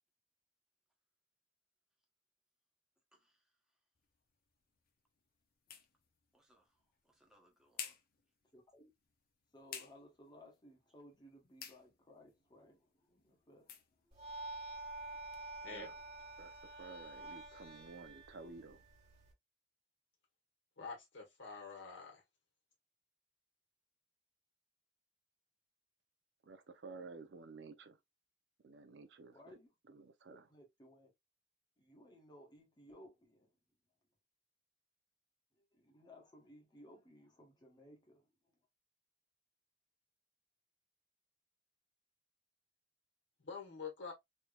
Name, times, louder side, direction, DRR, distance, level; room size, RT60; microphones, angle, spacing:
voice 1, 3.1-3.8 6.3-8.0, right 1 dB, 5° right, 1.0 m, -72 dB
sound 1, 4.0-15.5, left 8 dB, 55° left, 0.6 m, -56 dB
voice 2, 8.5-8.9 9.5-14.1 29.3-29.7 30.3-31.1 31.8-33.5 35.5-38.6, equal, 25° left, 1.0 m, -60 dB
sound 2, 14.1-19.3, right 2 dB, 35° right, 1.7 m, -49 dB
voice 3, 16.4-18.8 26.4-28.0 28.6-29.6 29.9-30.5, right 4 dB, 70° right, 0.5 m, -53 dB
voice 4, 20.8-22.2 43.4-44.1, left 5 dB, 80° left, 1.3 m, -47 dB
3.3 x 2.9 x 2.3 m
head